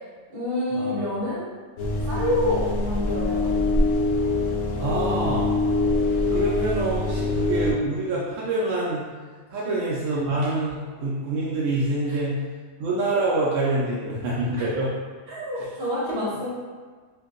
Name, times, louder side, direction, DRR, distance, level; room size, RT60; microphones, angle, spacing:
voice 1, 0.3-1.4 2.1-3.5 9.6-9.7 12.1-12.2 14.6-14.7 15.3-16.5, left 1 dB, 50° right, -8 dB, 1.3 m, -27 dB
sound 1, 1.8-7.7, left 2 dB, 75° left, 1.1 m, -24 dB
voice 2, 4.7-5.5 6.3-9.0 9.5-12.4 12.8-14.9, right 2 dB, 80° right, -6 dB, 1.0 m, -26 dB
2.8 x 2.6 x 3.7 m, 1.5 s
omnidirectional pair, 1.3 m